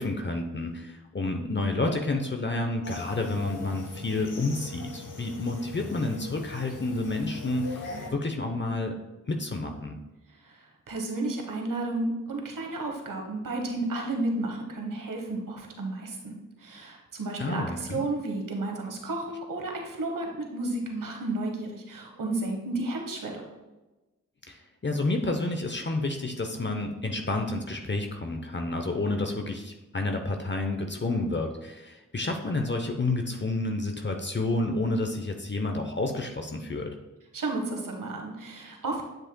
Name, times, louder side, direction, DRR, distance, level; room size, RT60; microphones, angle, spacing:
voice 1, 0.0-8.9 9.3-10.0 17.4-18.0 24.5-36.9, left 2 dB, 35° left, 4 dB, 0.8 m, -30 dB
sound 1, 2.8-8.1, left 3 dB, 75° left, 1.2 m, -40 dB
voice 2, 10.3-23.5 37.3-39.0, right 2 dB, 85° right, 1 dB, 1.2 m, -32 dB
7.7 x 7.4 x 2.2 m, 1.1 s
cardioid pair, 45°, 32 cm